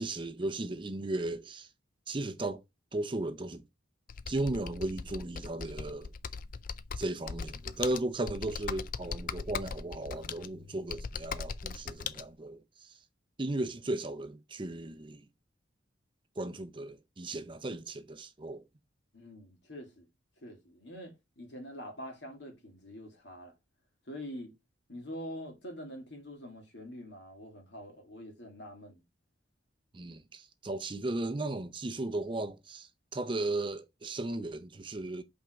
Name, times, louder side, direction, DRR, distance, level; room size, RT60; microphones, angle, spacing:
voice 1, 0.0-1.7 2.1-2.6 2.9-3.6 4.3-6.1 7.0-13.0 13.4-15.2 16.4-18.6 29.9-35.2, right 2 dB, 25° right, 0.5 m, -36 dB
Computer keyboard, 4.1-12.2, left 6 dB, 45° left, 0.4 m, -40 dB
voice 2, 19.1-20.1 20.4-23.5 24.1-24.5 24.9-29.0, equal, 65° left, 2.3 m, -45 dB
5.5 x 3.6 x 5.1 m
head